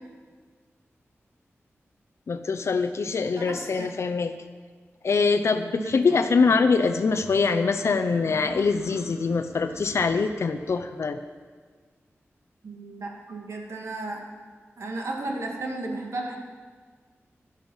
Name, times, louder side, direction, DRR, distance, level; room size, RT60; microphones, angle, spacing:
voice 1, 2.3-4.3 5.0-11.2, left 4 dB, 70° left, 7 dB, 0.6 m, -23 dB
voice 2, 3.4-3.9 5.7-6.0 12.6-14.2 14.8-16.4, right 2 dB, 75° right, 0 dB, 2.3 m, -34 dB
sound 1, 6.1-10.9, right 2 dB, 50° right, 1.3 m, -45 dB
16.0 x 11.5 x 5.6 m, 1.6 s
wide cardioid pair, 125°, 5 cm